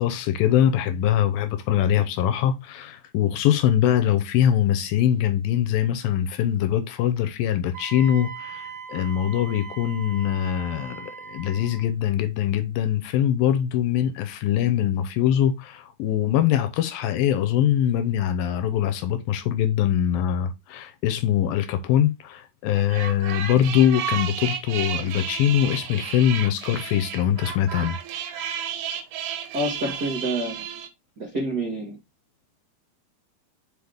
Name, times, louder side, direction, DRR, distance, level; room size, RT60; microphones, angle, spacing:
voice 1, 0.0-28.0, left 10 dB, 75° left, 2.3 m, -23 dB
Wind instrument woodwind instrument, 7.7-11.9, right 6 dB, 35° right, 2.7 m, -39 dB
sound 1, 22.8-30.9, right 8 dB, 80° right, 3.1 m, -32 dB
voice 2, 29.5-30.6 31.2-32.0, right 1 dB, 65° right, 0.9 m, -28 dB
6.5 x 4.9 x 3.4 m
omnidirectional pair, 4.5 m